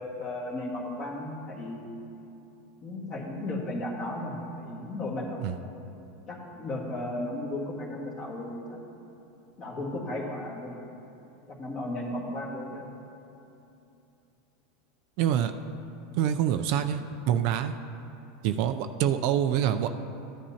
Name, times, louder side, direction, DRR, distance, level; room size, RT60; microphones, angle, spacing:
voice 1, 0.0-1.8 2.8-5.4 6.3-8.8 9.6-10.7 11.5-12.9, left 1 dB, 30° left, -1 dB, 1.7 m, -35 dB
voice 2, 15.2-15.5 16.2-17.7 18.4-19.9, right 10 dB, 50° right, 8 dB, 0.4 m, -26 dB
14.5 x 10.5 x 2.8 m, 2.8 s
supercardioid pair, 160°, 0 cm